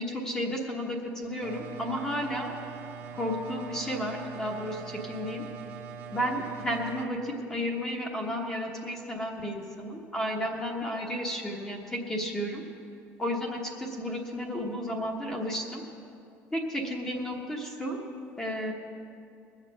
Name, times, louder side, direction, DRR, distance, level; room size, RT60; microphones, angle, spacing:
voice 1, 0.0-2.5 3.2-5.4 6.1-12.6 13.2-15.8 16.5-18.0 18.4-18.7, equal, 10° left, 0 dB, 1.2 m, -32 dB
sound 1, 1.4-7.0, right 7 dB, 45° right, 1.0 m, -42 dB
21.0 x 7.5 x 6.4 m, 2.6 s
cardioid pair, 175°, 5 cm